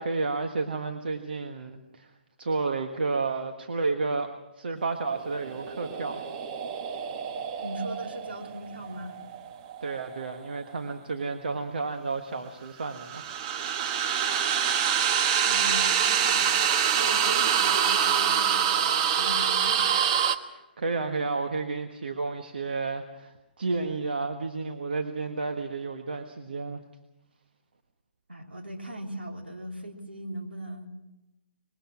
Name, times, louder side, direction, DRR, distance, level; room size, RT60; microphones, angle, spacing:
voice 1, 0.0-2.1 2.4-6.3 9.8-13.3 20.5-26.8, right 3 dB, 65° right, 5 dB, 1.5 m, -31 dB
sound 1, 5.2-10.4 12.8-20.4, right 8 dB, 35° right, 1.2 m, -26 dB
voice 2, 7.6-9.2 15.4-16.6 16.9-19.9 28.3-30.9, right 1 dB, 85° right, 2 dB, 3.3 m, -39 dB
24.0 x 21.5 x 6.0 m, 0.98 s
figure-of-eight pair, 130°, 6 cm